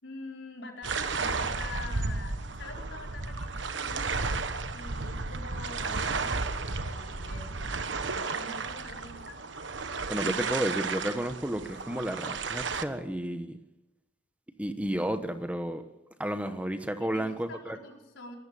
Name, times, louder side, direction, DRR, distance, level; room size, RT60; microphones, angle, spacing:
voice 1, 0.0-9.4 17.0-18.4, left 2 dB, 90° left, 0 dB, 4.9 m, -45 dB
sound 1, 0.8-12.8, right 4 dB, 85° right, 1.3 m, -33 dB
voice 2, 10.1-13.5 14.6-15.8 16.2-17.8, right 1 dB, 5° right, 9 dB, 1.0 m, -32 dB
23.0 x 13.5 x 8.5 m, 1.0 s
head